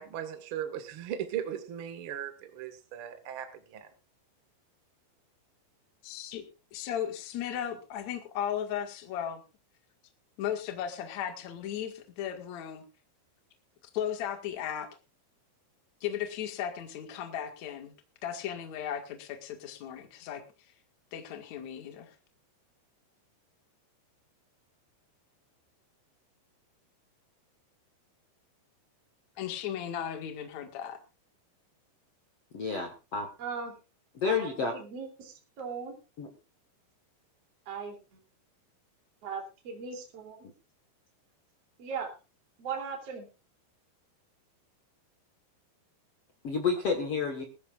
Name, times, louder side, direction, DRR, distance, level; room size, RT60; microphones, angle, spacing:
voice 1, 0.0-3.9, right 9 dB, 75° right, 1.2 m, -38 dB
voice 2, 6.0-6.5 6.7-9.4 10.4-12.8 13.9-14.9 16.0-17.9 18.2-20.4 21.1-22.1 29.4-31.0, left 9 dB, 50° left, 2.5 m, -36 dB
voice 3, 32.5-33.3 34.1-34.7 36.2-36.3 46.4-47.4, left 5 dB, 70° left, 1.4 m, -30 dB
voice 4, 33.4-33.7 34.2-36.0 37.7-38.2 39.2-40.5 41.8-42.1 42.6-43.3, right 6 dB, 35° right, 3.6 m, -38 dB
20.5 x 14.0 x 2.5 m
omnidirectional pair, 5.3 m